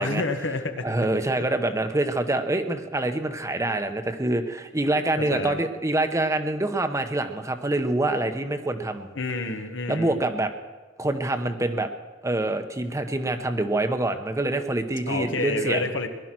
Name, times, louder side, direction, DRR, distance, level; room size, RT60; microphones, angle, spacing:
voice 1, 0.0-0.9 5.3-5.6 9.1-10.2 15.1-16.1, left 2 dB, 75° left, 6 dB, 1.5 m, -29 dB
voice 2, 0.8-9.1 9.9-10.5 11.0-11.9 12.2-15.9, right 2 dB, 15° right, 7 dB, 0.9 m, -26 dB
19.5 x 12.0 x 6.1 m, 1.3 s
head